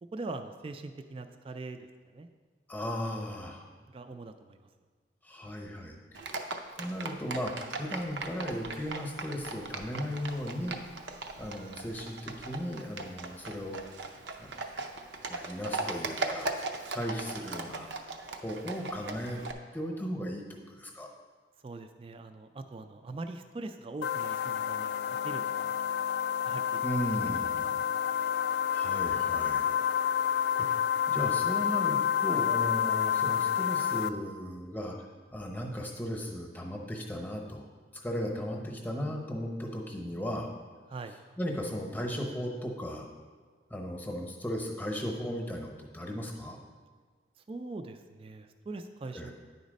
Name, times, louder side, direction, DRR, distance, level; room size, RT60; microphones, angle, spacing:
voice 1, 0.1-1.8 2.1-2.3 3.9-4.6 21.6-25.7 26.5-26.8 27.3-27.7 40.9-41.2 47.5-49.3, right 3 dB, 30° right, 7 dB, 0.3 m, -42 dB
voice 2, 2.7-3.6 5.2-6.0 6.7-10.8 11.4-13.8 14.4-14.6 15.3-16.5 16.9-18.0 18.4-19.4 19.7-21.1 26.8-27.8 28.7-29.7 30.6-30.7 31.1-35.0 35.3-37.7 37.9-40.5 41.4-43.1 43.7-46.6 49.1-49.3, equal, 10° left, 1 dB, 0.8 m, -36 dB
Livestock farm animals working animals, 6.1-19.5, right 3 dB, 85° right, 0.6 m, -39 dB
sound 1, 24.0-34.1, left 9 dB, 65° left, 0.3 m, -29 dB
9.5 x 4.1 x 5.2 m, 1.6 s
head